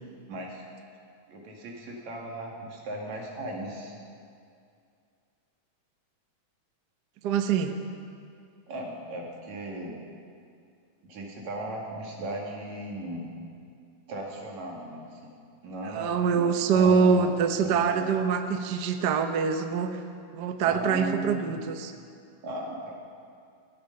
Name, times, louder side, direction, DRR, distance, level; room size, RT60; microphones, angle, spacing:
voice 1, 0.3-0.6 1.3-3.9 8.7-10.0 11.0-13.3 14.1-15.3 15.6-17.3 17.6-18.1 20.6-21.6 22.4-22.9, right 1 dB, 70° right, -1 dB, 3.7 m, -37 dB
voice 2, 7.2-7.7 15.9-20.0 20.3-21.9, right 6 dB, 90° right, 6 dB, 0.9 m, -24 dB
19.5 x 13.5 x 5.5 m, 2.3 s
omnidirectional pair, 3.3 m